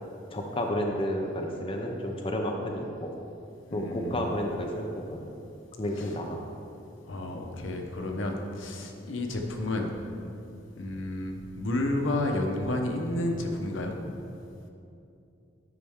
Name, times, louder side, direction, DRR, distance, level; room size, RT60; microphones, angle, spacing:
voice 1, 0.3-3.1 3.7-5.3 5.8-6.4, left 1 dB, 30° left, 1 dB, 0.5 m, -31 dB
voice 2, 3.7-4.2 6.0-6.1 7.1-9.9 10.8-14.0, left 1 dB, 80° left, 3 dB, 0.8 m, -31 dB
9.8 x 5.4 x 3.5 m, 2.6 s
head